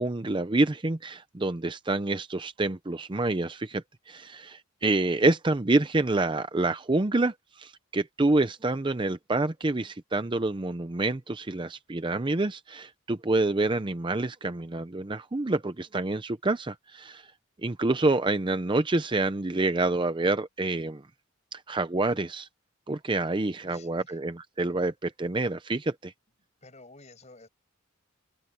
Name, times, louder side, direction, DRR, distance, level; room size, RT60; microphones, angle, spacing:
voice 1, 0.0-17.3 17.6-21.0 21.5-22.5 22.9-26.1, right 2 dB, 25° right, 0.6 m, -27 dB
voice 2, 23.6-24.2 26.6-27.5, left 3 dB, 35° left, 6.6 m, -51 dB
open air
head